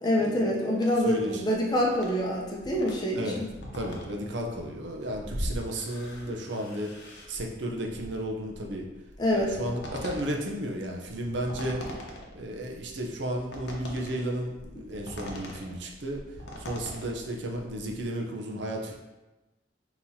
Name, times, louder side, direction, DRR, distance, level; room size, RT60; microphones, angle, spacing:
voice 1, 0.0-3.5 9.2-9.6, left 1 dB, 20° left, -2 dB, 0.6 m, -26 dB
sound 1, 0.8-18.0, equal, 65° left, 0.7 m, -42 dB
voice 2, 1.0-1.4 3.2-3.4 3.7-6.9 7.3-8.9 9.3-11.8 12.3-16.2 16.6-19.0, right 1 dB, 70° right, 1 dB, 0.6 m, -33 dB
5.5 x 2.9 x 2.7 m, 1.1 s
head